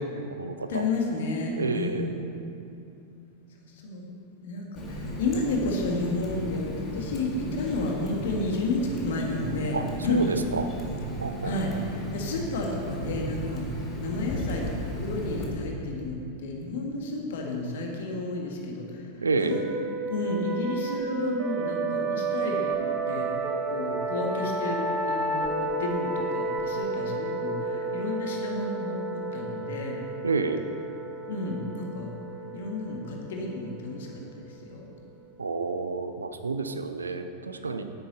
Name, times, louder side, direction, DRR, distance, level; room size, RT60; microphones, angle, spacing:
voice 1, 0.0-0.8 1.6-2.2 9.7-10.7 11.2-11.5 19.2-19.6 30.2-30.6 35.4-37.8, right 3 dB, 75° right, 8 dB, 0.5 m, -29 dB
voice 2, 0.7-2.2 3.6-4.1 4.4-9.8 10.0-10.2 11.4-13.6 14.0-19.1 19.4-19.6 20.1-22.8 23.0-23.3 23.7-29.9 31.3-32.1 32.5-34.9 37.7-37.8, left 2 dB, 55° left, 0 dB, 1.6 m, -31 dB
Water tap faucet, 4.8-15.5, right 1 dB, 20° left, 1.9 m, -35 dB
sound 1, 19.5-34.8, right 3 dB, 25° right, 1.0 m, -31 dB
9.8 x 8.9 x 4.0 m, 2.7 s
figure-of-eight pair, 90°, 0 cm